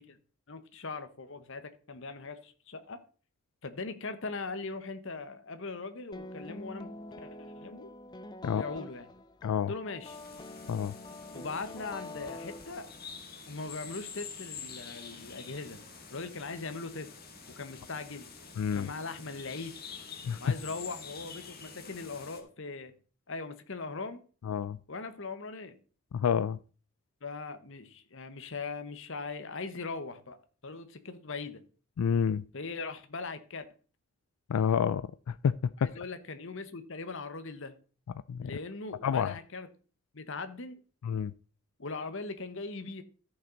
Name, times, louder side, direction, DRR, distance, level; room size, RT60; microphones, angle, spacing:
voice 1, 0.5-3.0 3.6-6.9 7.2-7.9 8.4-9.1 9.7-10.2 11.3-12.9 13.5-15.8 16.1-17.1 17.6-18.3 18.7-19.8 20.4-22.9 23.3-24.2 24.9-25.8 27.2-30.4 30.6-31.6 32.5-33.6 35.8-37.8 38.4-39.7 40.1-40.8 41.8-43.0, left 3 dB, 60° left, 1.1 m, -40 dB
sound 1, 6.1-13.2, left 2 dB, 20° left, 0.5 m, -46 dB
sound 2, 10.0-22.4, left 5 dB, 45° left, 1.7 m, -47 dB
voice 2, 18.6-18.9 20.2-20.4 24.5-24.8 26.1-26.6 32.0-32.4 34.5-35.9 38.3-38.5 39.0-39.3 41.0-41.3, left 7 dB, 90° left, 0.4 m, -29 dB
14.0 x 5.7 x 4.0 m
head